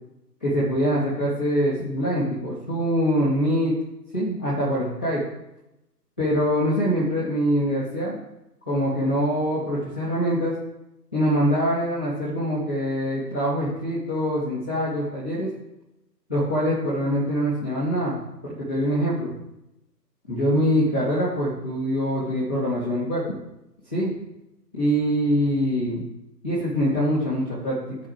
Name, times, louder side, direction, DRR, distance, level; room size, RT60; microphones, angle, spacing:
voice 1, 0.4-3.7 4.1-5.2 6.2-8.2 8.7-10.5 11.1-15.5 16.3-19.3 20.3-23.4 23.9-24.1 24.7-26.0 26.4-28.0, equal, 5° left, -14 dB, 0.6 m, -24 dB
9.2 x 4.7 x 7.4 m, 0.91 s
figure-of-eight pair, 145°, 49 cm